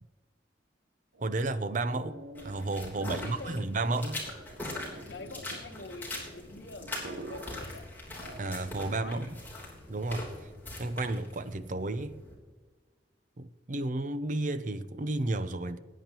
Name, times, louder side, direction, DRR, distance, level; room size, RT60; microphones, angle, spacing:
sound 1, 1.1-9.0, right 2 dB, 80° right, 1.0 m, -48 dB
voice 1, 1.2-2.2 2.4-4.2 8.4-9.4 9.9-10.3 10.8-12.2 13.4-15.8, right 2 dB, 45° right, 0.6 m, -32 dB
sound 2, 2.3-12.3, left 2 dB, 10° left, 3.3 m, -42 dB
voice 2, 3.0-4.0 5.1-7.9 8.9-9.2, left 3 dB, 70° left, 1.1 m, -46 dB
19.5 x 9.3 x 2.9 m
head